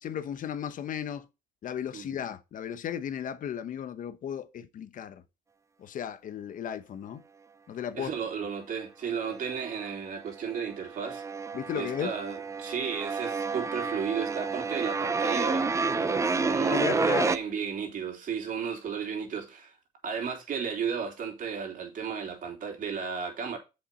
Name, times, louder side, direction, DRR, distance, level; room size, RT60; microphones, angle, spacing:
voice 1, 0.0-1.3 1.6-5.2 5.8-7.2 7.7-8.1 11.5-12.1 16.7-17.3, left 9 dB, 50° left, 1.0 m, -35 dB
voice 2, 7.9-11.2 11.7-19.8 20.0-23.6, right 6 dB, 50° right, 3.2 m, -34 dB
sound 1, 9.1-9.9 10.2-17.4, right 4 dB, 15° right, 0.6 m, -30 dB
7.1 x 5.4 x 5.4 m
cardioid pair, 110°, 17 cm